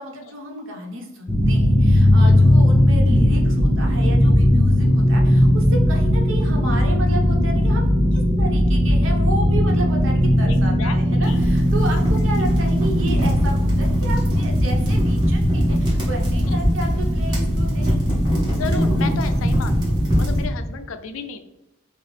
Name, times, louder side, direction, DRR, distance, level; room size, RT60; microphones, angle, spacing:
voice 1, 0.0-7.9 8.1-18.0, right 1 dB, 65° right, 1 dB, 0.9 m, -32 dB
sound 1, 1.3-20.5, left 1 dB, 10° left, 0.6 m, -19 dB
voice 2, 10.4-11.4 15.3-15.4 16.5-16.6 18.4-21.4, left 4 dB, 70° left, 9 dB, 0.4 m, -33 dB
sound 2, 11.2-20.4, equal, 20° right, 1.3 m, -22 dB
5.5 x 2.0 x 3.2 m, 0.94 s
head